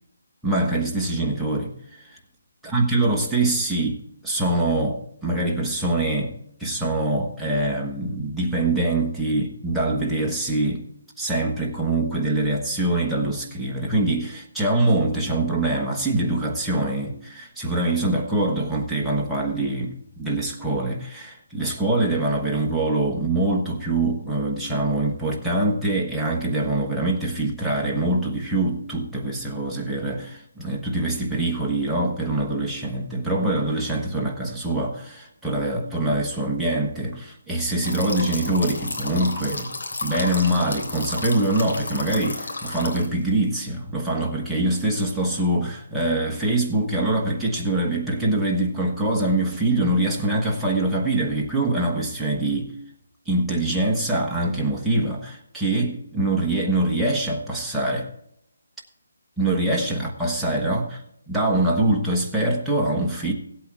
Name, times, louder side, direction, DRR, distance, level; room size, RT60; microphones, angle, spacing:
voice 1, 0.4-1.7 2.6-6.3 6.6-10.8 11.2-39.7 40.0-52.7 53.3-58.1 59.4-61.0 61.3-63.3, right 2 dB, ahead, -4 dB, 1.2 m, -24 dB
sound 1, 37.8-43.3, left 2 dB, 70° left, 3.3 m, -32 dB
16.5 x 8.4 x 3.7 m, 0.77 s
hypercardioid pair, 170°, 0 cm